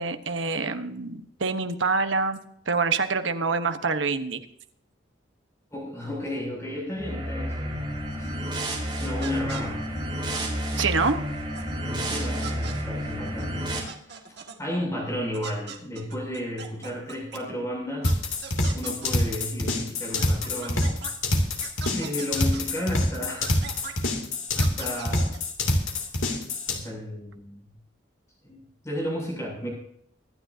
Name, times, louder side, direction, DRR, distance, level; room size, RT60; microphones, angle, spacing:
voice 1, 0.0-2.4 2.7-4.4 10.8-11.2, right 4 dB, 70° right, 8 dB, 1.2 m, -26 dB
voice 2, 5.7-7.9 8.2-8.3 8.9-9.8 11.8-13.8 14.1-18.1 18.7-21.0 21.9-23.5 24.6-25.3 26.7-27.7 28.4-28.6 28.8-29.7, left 1 dB, 15° left, -2 dB, 7.0 m, -33 dB
sound 1, 7.0-13.8, equal, 25° right, 4.1 m, -31 dB
sound 2, 9.2-9.6 10.3-10.4 10.8-10.9 11.5-11.7 12.2-12.8 13.4-13.5 13.7-14.6 15.3-17.4 18.0-18.1 18.4-19.1 20.2-21.1 21.6-22.6 23.4-24.1 24.6-25.4, right 6 dB, 55° right, 1.9 m, -40 dB
sound 3, 18.0-26.8, left 1 dB, 90° left, 2.9 m, -25 dB
24.5 x 10.5 x 2.8 m, 0.70 s
head